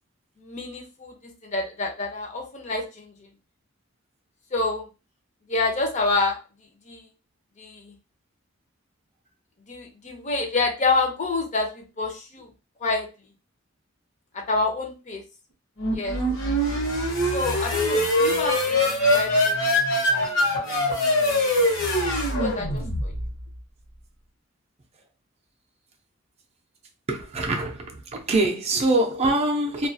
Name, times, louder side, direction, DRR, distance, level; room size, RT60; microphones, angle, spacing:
voice 1, 0.4-3.1 4.5-4.8 5.5-6.4 6.9-7.0 7.6-7.9 9.7-12.5 12.8-13.1 14.3-15.2 15.9-16.2 17.3-19.6 20.1-20.3 20.6-20.8 21.6-21.7 22.3-23.1, left 3 dB, 35° left, 0.6 m, -28 dB
sound 1, 15.8-23.4, left 1 dB, 70° left, 0.9 m, -23 dB
voice 2, 27.1-29.9, right 2 dB, 30° right, 0.5 m, -24 dB
2.3 x 2.3 x 2.6 m
head